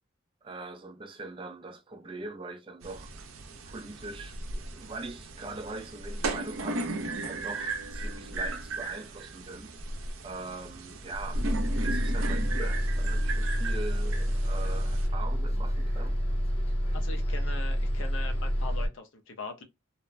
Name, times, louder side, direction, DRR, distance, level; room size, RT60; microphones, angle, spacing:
voice 1, 0.4-3.1 3.7-9.8 10.2-11.4 11.8-16.2, right 3 dB, 25° right, 0.3 m, -42 dB
sound 1, 2.8-15.1, right 2 dB, 80° right, 0.5 m, -36 dB
Bus, 11.3-18.9, equal, 25° left, 0.7 m, -28 dB
voice 2, 16.9-19.6, left 3 dB, 70° left, 0.6 m, -41 dB
2.9 x 2.1 x 2.4 m
head